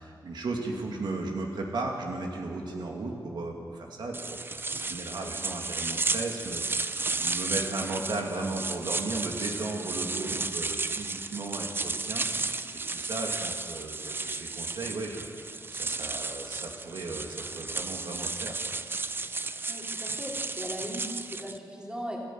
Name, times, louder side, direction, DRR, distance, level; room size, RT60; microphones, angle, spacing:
voice 1, 0.0-18.6, right 2 dB, 75° right, 1 dB, 2.5 m, -36 dB
sound 1, 4.1-21.6, right 3 dB, 30° right, 0.7 m, -33 dB
voice 2, 19.7-22.2, equal, 10° right, -2 dB, 3.4 m, -38 dB
27.5 x 14.0 x 7.7 m, 2.3 s
wide cardioid pair, 135°, 8 cm